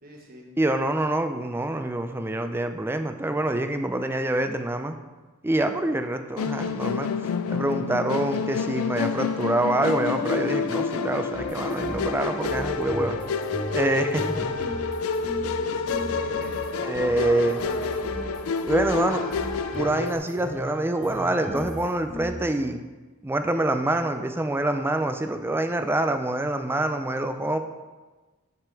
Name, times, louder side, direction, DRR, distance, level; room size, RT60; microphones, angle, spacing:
voice 1, 0.0-0.4 15.5-18.0 18.9-19.3, right 1 dB, 45° right, -2 dB, 1.4 m, -42 dB
voice 2, 0.6-5.0 5.4-7.1 7.5-13.2 13.7-14.5 16.8-17.6 18.7-19.2 19.7-22.8 23.2-27.6, right 1 dB, 10° right, 7 dB, 0.4 m, -26 dB
Musical instrument, 6.4-20.2, left 5 dB, 70° left, 0.4 m, -28 dB
sound 1, 11.3-22.5, equal, 25° left, 1.8 m, -37 dB
7.5 x 5.1 x 4.7 m, 1.3 s
head